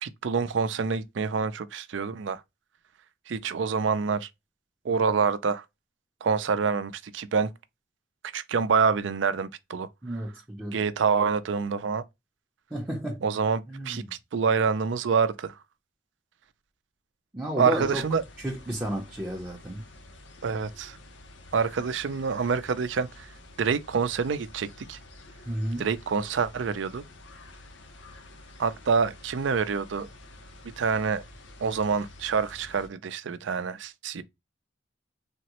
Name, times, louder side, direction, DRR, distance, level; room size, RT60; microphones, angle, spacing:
voice 1, 0.0-2.4 3.3-4.3 4.8-5.6 6.2-7.5 8.3-9.9 10.7-12.0 13.2-14.0 14.3-15.6 17.6-18.2 20.4-21.0 21.5-23.3 23.6-25.0 25.8-27.0 28.6-30.1 30.8-31.2 31.6-34.2, right 5 dB, 75° right, 0.4 m, -26 dB
voice 2, 10.0-10.8 12.7-13.2 13.7-14.1 17.3-18.0 18.4-19.8 25.4-25.9, equal, 10° right, 0.5 m, -32 dB
sound 1, 17.7-32.9, left 2 dB, 75° left, 0.7 m, -49 dB
3.5 x 2.0 x 2.8 m
head